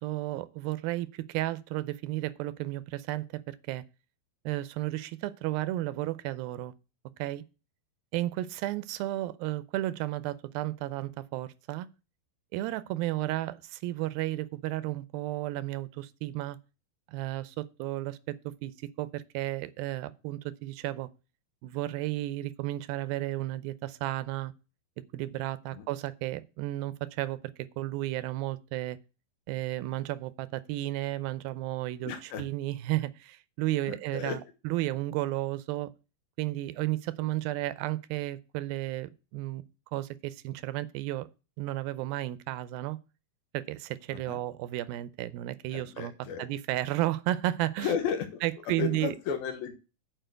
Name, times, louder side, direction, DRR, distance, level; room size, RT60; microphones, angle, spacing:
voice 1, 0.0-3.8 4.5-6.7 7.2-7.4 8.1-11.9 12.5-16.6 17.1-21.1 21.6-24.5 25.1-29.0 29.5-32.1 32.4-34.4 34.6-35.9 36.4-39.7 39.9-41.3 41.6-43.0 43.5-46.1 46.4-47.9 48.4-49.2, right 16 dB, 80° right, 2.4 m, -33 dB
voice 2, 32.1-32.4 33.9-34.4 44.1-44.4 45.7-46.4 47.8-49.8, left 7 dB, 80° left, 3.2 m, -34 dB
9.1 x 5.0 x 7.7 m
omnidirectional pair, 4.3 m